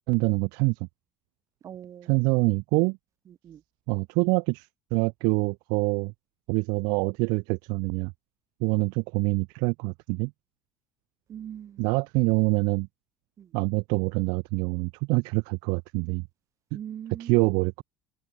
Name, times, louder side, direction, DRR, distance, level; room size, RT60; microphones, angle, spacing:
voice 1, 0.1-0.7 2.0-3.0 3.9-6.1 6.5-8.1 8.6-10.3 11.8-12.9 13.5-16.3 17.2-17.8, right 31 dB, 80° right, 0.6 m, -25 dB
voice 2, 1.6-2.2 3.4-3.6 11.3-11.9 13.4-13.5 16.7-17.5, right 9 dB, 45° right, 2.5 m, -41 dB
supercardioid pair, 110°, 8 cm